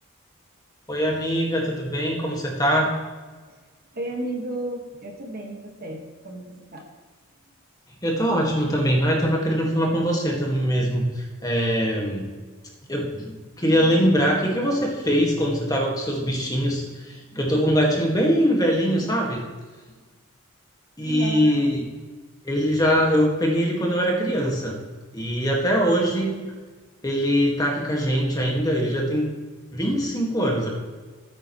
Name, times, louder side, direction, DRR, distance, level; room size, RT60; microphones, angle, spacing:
voice 1, 0.9-3.0 8.0-12.4 12.9-19.4 21.0-21.8 22.4-24.7 25.1-26.4 27.0-29.3 29.7-30.7, equal, 15° left, -1 dB, 1.9 m, -22 dB
voice 2, 3.9-6.8 21.1-21.5, right 2 dB, 40° right, 1 dB, 1.8 m, -33 dB
14.0 x 9.3 x 3.2 m, 1.4 s
head